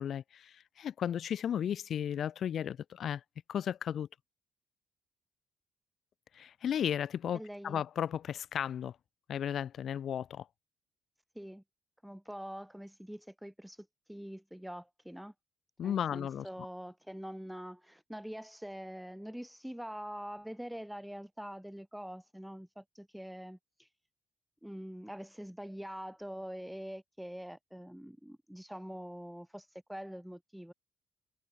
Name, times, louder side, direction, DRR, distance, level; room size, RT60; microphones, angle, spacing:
voice 1, 0.0-3.2 3.5-4.1 6.3-9.0 9.3-10.5 15.8-16.5, left 9 dB, 65° left, 2.1 m, -34 dB
voice 2, 7.3-7.8 11.3-11.6 12.0-15.3 15.8-23.9 24.6-30.7, equal, 5° right, 2.9 m, -44 dB
cardioid pair, 90°, 0 cm